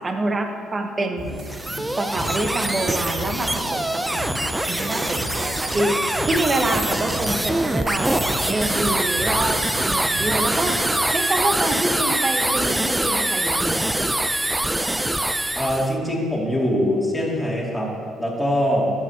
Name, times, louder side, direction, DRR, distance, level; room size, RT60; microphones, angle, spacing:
voice 1, 0.0-1.3 2.0-5.9 6.2-8.2 8.5-9.6 9.9-10.8 11.1-14.3, right 2 dB, 30° right, 4 dB, 1.1 m, -26 dB
sound 1, 1.2-10.8, equal, 70° right, 2.0 m, -34 dB
sound 2, 1.3-15.9, right 1 dB, 10° right, 0.5 m, -24 dB
voice 2, 15.6-18.9, equal, 5° left, -5 dB, 2.6 m, -23 dB
12.0 x 8.5 x 2.9 m, 2.2 s
cardioid pair, 85°, 0 cm